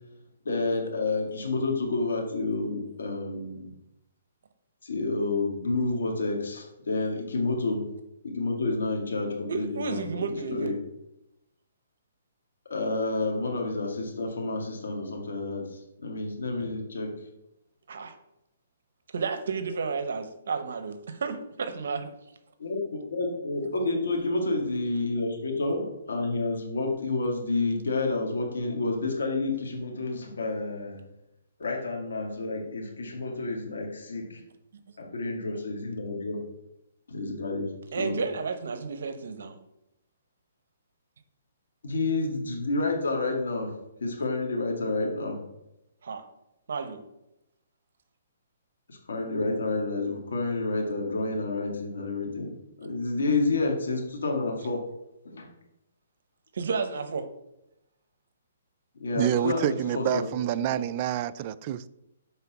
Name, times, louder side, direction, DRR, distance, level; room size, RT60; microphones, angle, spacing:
voice 1, 0.5-3.7 4.8-7.8 8.2-10.1 10.5-10.7 12.7-17.1 22.6-31.0 31.6-34.4 35.0-36.4 37.1-37.7 38.0-38.2 41.8-45.4 48.9-52.5 52.8-54.8 55.3-55.5 59.0-60.3, left 3 dB, 90° left, 1.9 m, -29 dB
voice 2, 9.5-10.7 17.9-18.2 19.1-22.1 37.9-39.6 46.0-46.3 46.7-47.0 56.5-57.3, right 5 dB, 70° right, 0.8 m, -32 dB
voice 3, 59.1-61.9, right 11 dB, 30° right, 0.3 m, -27 dB
6.7 x 4.3 x 6.0 m
hypercardioid pair, 160°, 0 cm